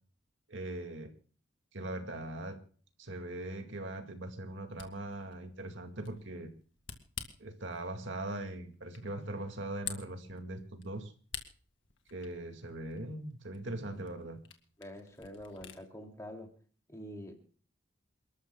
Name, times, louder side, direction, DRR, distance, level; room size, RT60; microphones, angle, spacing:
voice 1, 0.5-1.1 1.7-2.6 3.0-6.5 7.4-11.1 12.1-14.4, right 1 dB, 70° right, 5 dB, 2.1 m, -40 dB
Camera, 4.5-15.8, left 9 dB, 75° left, 1.9 m, -50 dB
voice 2, 14.8-16.5 16.9-17.4, equal, 15° left, 2 dB, 2.7 m, -46 dB
28.5 x 13.0 x 2.3 m, 0.43 s
head